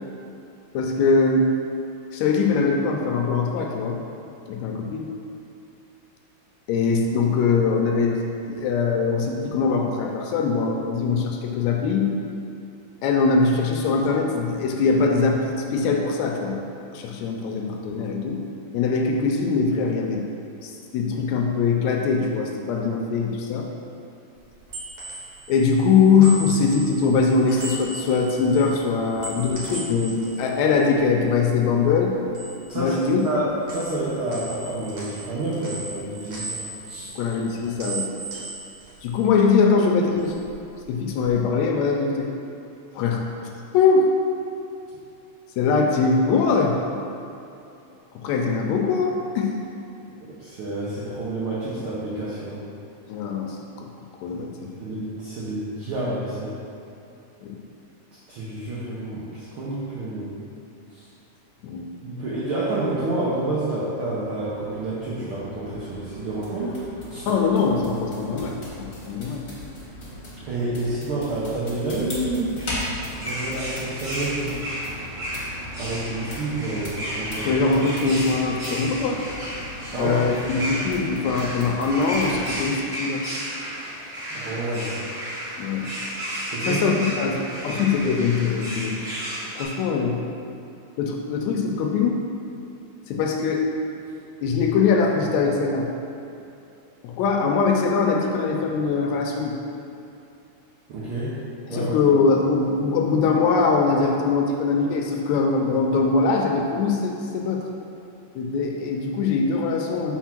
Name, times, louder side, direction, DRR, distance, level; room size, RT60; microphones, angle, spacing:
voice 1, 0.7-1.5 2.1-4.0 4.5-5.1 6.7-12.1 13.0-16.6 16.9-18.4 18.7-20.2 20.6-23.7 25.5-32.1 32.8-33.2 37.2-38.2 39.0-40.4 40.9-42.3 43.0-43.3 43.7-44.1 45.6-46.8 48.2-49.6 53.1-53.9 54.2-54.5 57.4-57.6 61.6-61.9 67.3-69.4 77.4-79.2 79.9-83.2 85.6-85.9 86.6-89.0 89.6-90.2 91.0-92.2 93.1-93.7 94.4-95.9 97.0-99.6 101.7-107.6 108.4-110.2, left 4 dB, 80° left, 1 dB, 1.8 m, -22 dB
sound 1, 24.4-31.7 32.0-33.4 33.7-39.7 40.0-41.3, right 3 dB, 55° right, 1.9 m, -38 dB
voice 2, 32.7-37.1 50.3-52.6 54.6-56.6 58.3-60.3 62.0-66.8 67.1-67.3 70.5-72.6 73.2-74.6 75.8-77.6 79.9-80.1 84.3-85.0 86.5-86.8 87.2-87.3 100.9-101.4 101.7-101.9, right 2 dB, 70° right, -8 dB, 1.2 m, -29 dB
sound 2, 64.7-82.6, left 1 dB, 40° left, 1.2 m, -38 dB
sound 3, 72.6-89.6, equal, 40° right, 1.3 m, -33 dB
4.6 x 4.3 x 5.8 m, 2.8 s
omnidirectional pair, 3.4 m